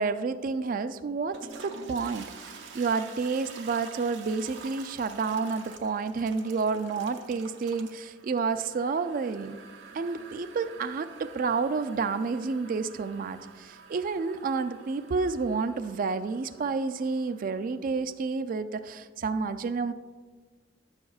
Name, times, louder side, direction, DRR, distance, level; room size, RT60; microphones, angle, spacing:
voice 1, 0.0-9.6 9.9-19.9, right 4 dB, 50° right, 12 dB, 0.3 m, -30 dB
Toilet flush, 1.2-17.9, right 5 dB, 85° right, 0.7 m, -48 dB
10.5 x 7.2 x 2.3 m, 1.4 s
head